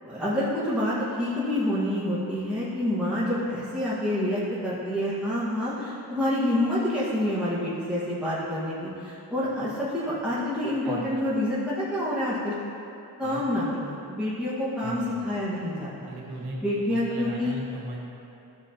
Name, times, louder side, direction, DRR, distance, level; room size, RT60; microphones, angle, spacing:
voice 1, 0.0-12.5 13.2-16.1 16.6-17.5, left 1 dB, 5° right, -10 dB, 1.6 m, -27 dB
voice 2, 10.8-11.2 13.2-13.4 14.8-15.2 16.1-18.0, right 1 dB, 70° right, -3 dB, 1.7 m, -37 dB
13.5 x 4.8 x 2.9 m, 2.9 s
wide cardioid pair, 95°, 39 cm